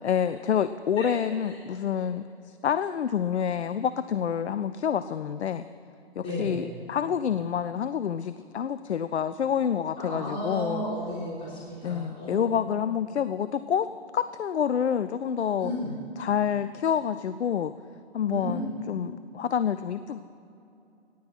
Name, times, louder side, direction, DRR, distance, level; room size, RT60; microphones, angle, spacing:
voice 1, 0.0-5.6 6.2-10.8 11.8-15.7 16.2-17.7 18.1-20.2, left 8 dB, 85° left, 13 dB, 0.5 m, -28 dB
voice 2, 6.2-6.6 10.0-12.8 15.6-16.0 18.2-18.7, equal, 40° left, -8 dB, 3.9 m, -34 dB
18.0 x 6.1 x 8.8 m, 2.8 s
figure-of-eight pair, 125°, 33 cm